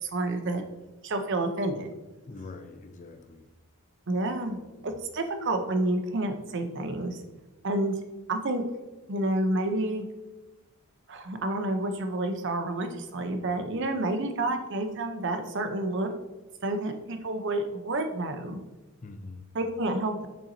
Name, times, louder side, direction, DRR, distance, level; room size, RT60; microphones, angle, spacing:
voice 1, 0.0-0.6 1.0-1.9 4.1-4.6 4.8-7.2 7.6-8.0 8.3-8.6 9.1-10.1 11.1-16.1 16.6-18.6 19.5-20.3, right 2 dB, 55° right, 7 dB, 0.6 m, -29 dB
voice 2, 2.3-3.5 4.4-4.9 19.0-19.5, left 3 dB, 35° left, 8 dB, 0.4 m, -44 dB
7.0 x 5.7 x 2.7 m, 1.1 s
head